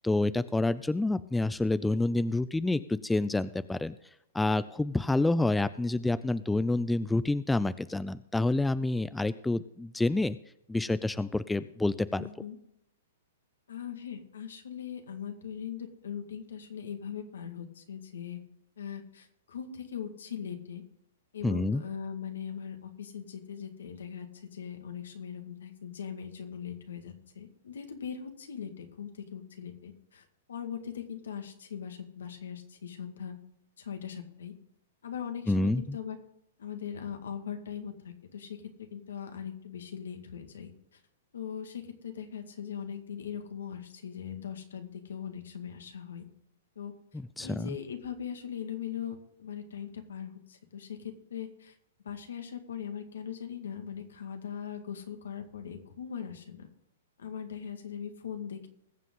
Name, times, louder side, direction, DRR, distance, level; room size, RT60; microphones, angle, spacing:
voice 1, 0.0-3.9 4.3-10.4 10.7-12.3 21.4-21.8 35.5-36.0 47.4-47.8, left 2 dB, 5° left, 15 dB, 0.4 m, -28 dB
voice 2, 12.2-12.6 13.7-18.4 18.8-20.8 21.3-33.4 33.8-34.5 35.0-36.2 36.6-41.0 41.3-46.2 46.8-46.9 47.4-51.8 52.0-56.7 57.2-58.7, left 8 dB, 75° left, 6 dB, 2.0 m, -40 dB
21.0 x 7.4 x 3.8 m, 0.80 s
hypercardioid pair, 120°, 0 cm